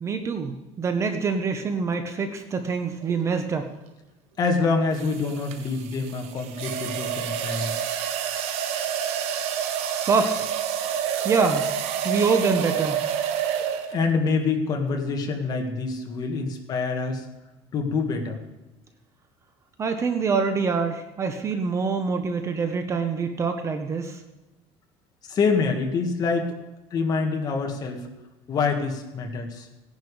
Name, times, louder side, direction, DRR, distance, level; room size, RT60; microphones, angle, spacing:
voice 1, 0.0-3.7 9.0-10.5 11.2-11.7 12.0-13.0 19.8-24.2, right 5 dB, 25° right, 7 dB, 0.9 m, -26 dB
sound 1, 3.0-3.3 5.0-14.2, right 9 dB, 65° right, 1.3 m, -28 dB
voice 2, 4.4-7.7 13.9-17.2 17.7-18.4 25.3-26.5 26.9-28.0 28.5-29.7, left 4 dB, 35° left, 3 dB, 1.9 m, -26 dB
17.0 x 10.5 x 5.0 m, 1.1 s
cardioid pair, 165°, 12 cm